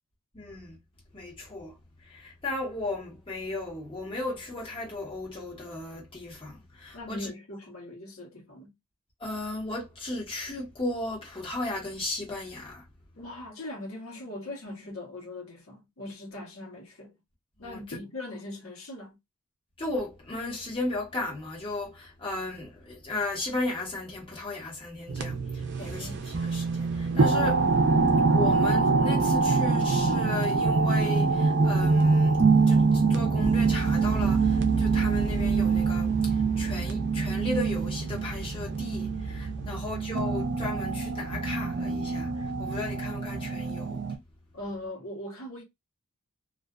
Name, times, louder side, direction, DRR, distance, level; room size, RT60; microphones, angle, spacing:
voice 1, 0.3-0.8 1.1-1.8 2.0-7.3 9.2-12.8 17.6-17.8 19.8-27.7 28.2-44.0, left 2 dB, 25° left, 1.1 m, -35 dB
voice 2, 6.9-8.7 13.1-17.1 17.6-19.2 25.8-26.4 39.6-39.7 44.5-45.6, left 1 dB, 75° left, 1.0 m, -40 dB
sound 1, 25.1-44.2, right 4 dB, 55° right, 0.6 m, -25 dB
2.4 x 2.4 x 2.3 m
head